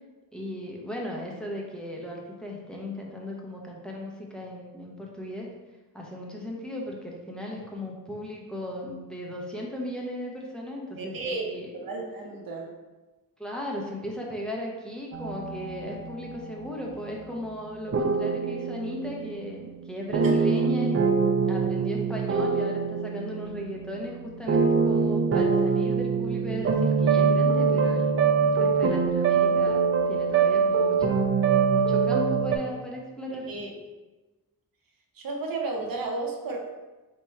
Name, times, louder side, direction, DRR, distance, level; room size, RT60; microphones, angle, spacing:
voice 1, 0.3-5.5 5.9-11.7 13.4-21.0 21.4-31.3 31.7-33.6, left 1 dB, ahead, -2 dB, 0.8 m, -36 dB
voice 2, 11.0-12.7 20.2-20.4 33.5-33.7 35.2-36.8, right 3 dB, 65° right, 0 dB, 0.8 m, -33 dB
sound 1, 15.1-16.7 17.9-32.6, right 5 dB, 40° right, 0.5 m, -24 dB
3.6 x 2.9 x 4.2 m, 1.2 s
wide cardioid pair, 110°, 36 cm